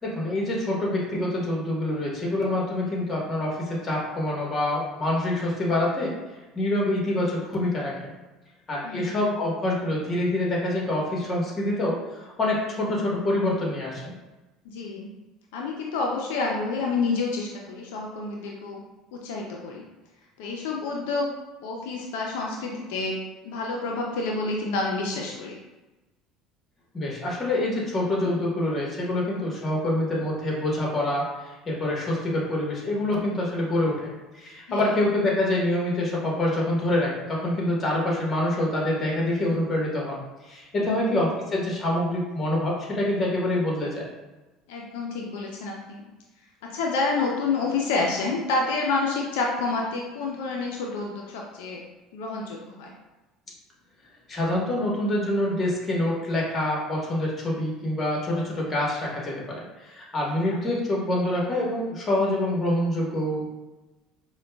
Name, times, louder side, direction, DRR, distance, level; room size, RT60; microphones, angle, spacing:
voice 1, 0.0-6.1 6.5-8.1 8.7-14.1 26.9-34.1 34.3-40.2 40.4-44.0 54.3-63.4, left 1 dB, 30° left, -3 dB, 1.2 m, -26 dB
voice 2, 8.8-9.2 14.7-15.1 15.5-18.8 19.1-19.8 20.4-21.3 21.6-23.2 23.4-25.6 34.7-34.9 40.7-41.1 44.7-46.1 46.7-51.8 52.1-52.9, left 3 dB, 85° left, -1 dB, 0.4 m, -28 dB
4.9 x 2.2 x 2.2 m, 1.1 s
supercardioid pair, 95°, 0 cm